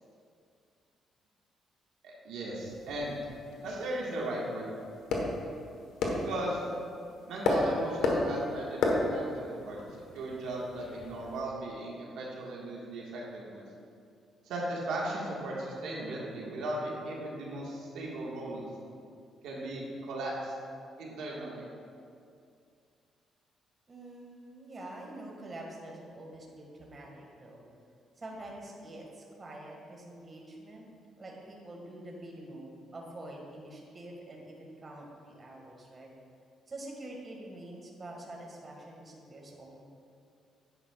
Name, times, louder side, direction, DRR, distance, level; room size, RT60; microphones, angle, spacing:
voice 1, 2.0-3.2 3.6-4.7 6.2-6.6 7.3-9.8 10.1-13.6 14.4-18.6 19.4-20.5 21.0-21.6, right 1 dB, 85° right, -4 dB, 1.5 m, -37 dB
sound 1, 2.6-11.4, left 2 dB, 90° left, 1.2 m, -34 dB
voice 2, 23.9-27.7 28.2-36.1 36.7-39.8, right 1 dB, 35° right, -1 dB, 1.7 m, -46 dB
9.9 x 9.8 x 2.4 m, 2.4 s
cardioid pair, 90°, 0 cm